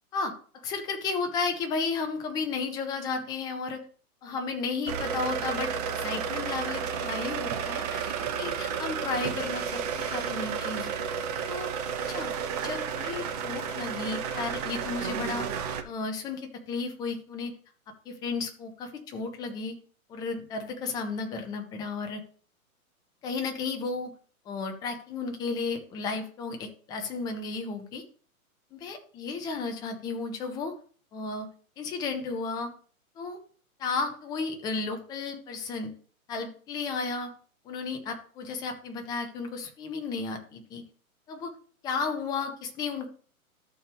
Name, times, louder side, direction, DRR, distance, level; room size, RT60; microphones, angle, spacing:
voice 1, 0.6-3.8 4.2-10.9 11.5-11.7 12.1-12.3 12.6-15.5 15.8-17.5 18.1-19.8 20.1-22.2 23.2-24.1 24.5-28.0 28.7-30.8 31.1-31.5 31.8-32.7 33.2-33.4 33.8-35.9 36.3-37.3 37.6-40.8 41.3-41.5 41.8-43.1, left 4 dB, 10° left, 5 dB, 0.5 m, -33 dB
sound 1, 4.9-15.8, right 7 dB, 30° right, 0.7 m, -32 dB
13.0 x 4.5 x 3.4 m, 0.43 s
figure-of-eight pair, 125°, 43 cm